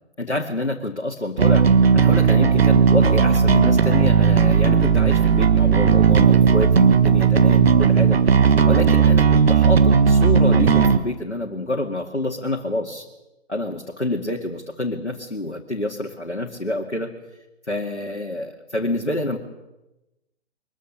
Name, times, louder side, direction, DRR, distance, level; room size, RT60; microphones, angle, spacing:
voice 1, 0.2-8.2 8.6-13.1 13.5-17.1 17.7-19.4, left 1 dB, 90° left, 1 dB, 2.3 m, -27 dB
Bass guitar, 1.4-11.0, right 6 dB, 60° right, 1.7 m, -15 dB
23.5 x 21.5 x 7.0 m, 0.99 s
figure-of-eight pair, 125°, 34 cm